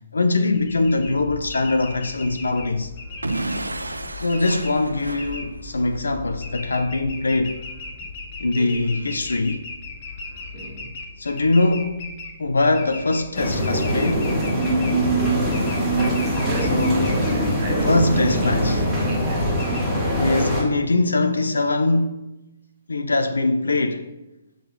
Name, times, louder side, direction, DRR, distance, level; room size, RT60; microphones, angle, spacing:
voice 1, 0.1-2.9 4.1-7.6 8.4-9.6 11.2-12.1 12.4-14.3 16.7-17.1 17.9-18.8 20.1-22.3 22.9-24.1, left 2 dB, 70° left, 0.4 m, -22 dB
sound 1, 0.5-19.8, left 3 dB, 35° left, 1.0 m, -38 dB
Explosion / Shatter, 3.2-6.0, right 2 dB, 80° right, 0.4 m, -31 dB
voice 2, 8.5-8.8 10.3-10.9 16.4-19.8, right 2 dB, 35° right, 1.4 m, -32 dB
sound 2, 13.3-20.6, equal, ahead, 2.2 m, -22 dB
6.7 x 3.8 x 4.8 m
figure-of-eight pair, 130°, 0 cm